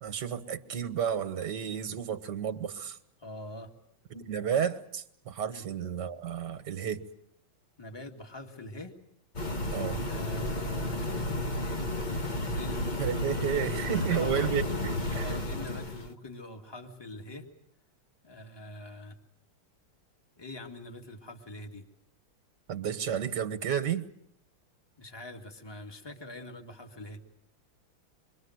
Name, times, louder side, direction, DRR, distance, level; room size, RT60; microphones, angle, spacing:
voice 1, 0.0-3.0 4.1-7.1 9.7-10.0 13.0-15.3 22.7-24.1, right 8 dB, 55° right, 1.9 m, -32 dB
voice 2, 3.2-3.7 5.5-5.6 7.8-9.0 10.1-11.9 12.5-14.6 15.1-17.5 18.2-19.1 20.4-21.8 25.0-27.2, left 2 dB, 10° left, 2.1 m, -44 dB
sound 1, 9.3-16.1, left 1 dB, 25° left, 1.1 m, -32 dB
27.0 x 23.0 x 7.9 m
omnidirectional pair, 2.3 m